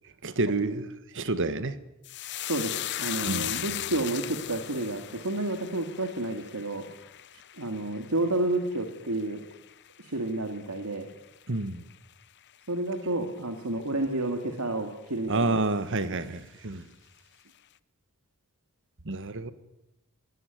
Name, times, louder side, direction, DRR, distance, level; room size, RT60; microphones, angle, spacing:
voice 1, 0.2-1.8 3.2-3.5 11.5-11.8 15.3-16.9 19.0-19.5, right 2 dB, 60° right, 1.6 m, -29 dB
sound 1, 2.0-10.7 11.0-11.6 11.9-12.1, left 13 dB, 55° left, 0.8 m, -38 dB
voice 2, 2.5-6.9 7.6-9.4 10.0-11.1 12.7-15.5, right 2 dB, 80° right, 2.4 m, -30 dB
22.0 x 18.0 x 9.4 m
head